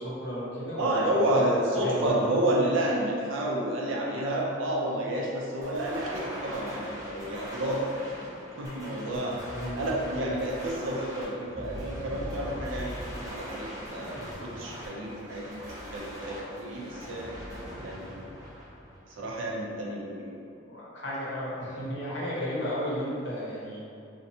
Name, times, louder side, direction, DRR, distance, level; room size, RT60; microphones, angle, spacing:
voice 1, 0.0-1.1 1.4-2.1 9.5-9.8 20.7-23.8, equal, 55° left, -7 dB, 0.7 m, -34 dB
voice 2, 0.8-8.1 8.6-13.0 13.2-17.3 17.8-18.1 19.1-20.3, right 1 dB, 75° right, -3 dB, 0.5 m, -30 dB
sound 1, 5.6-19.5, equal, 15° right, 0.4 m, -41 dB
2.6 x 2.1 x 2.6 m, 2.5 s
head